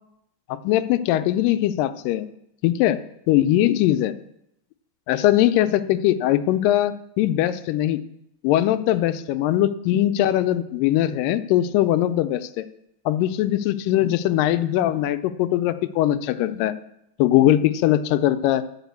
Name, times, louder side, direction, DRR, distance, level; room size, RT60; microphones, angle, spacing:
voice 1, 0.5-2.3 2.6-3.0 3.3-4.1 5.1-8.0 8.4-12.6 13.1-16.7 17.2-18.6, left 13 dB, 85° left, 11 dB, 2.2 m, -21 dB
11.5 x 4.9 x 8.1 m, 0.80 s
omnidirectional pair, 3.9 m